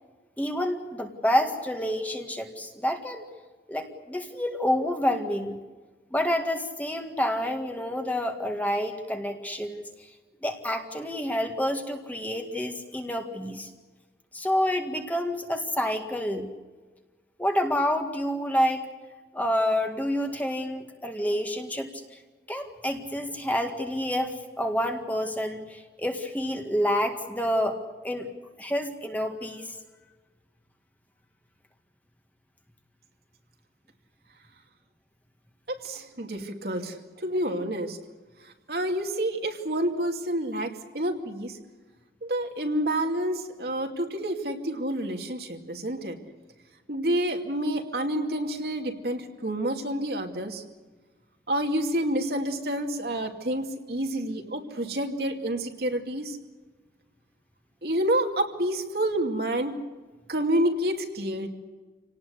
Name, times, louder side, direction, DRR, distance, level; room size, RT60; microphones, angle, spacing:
voice 1, 0.4-3.2 3.7-5.6 6.1-9.8 10.4-13.7 14.3-16.5 17.4-18.9 19.3-22.0 22.5-27.8 28.0-28.3 28.6-29.8, equal, 10° left, 4 dB, 1.9 m, -28 dB
voice 2, 35.7-38.0 38.7-41.6 42.2-46.2 46.9-50.6 51.5-56.4 57.8-59.8 60.3-61.5, right 1 dB, 65° right, 3 dB, 2.5 m, -28 dB
27.5 x 18.5 x 8.1 m, 1.3 s
head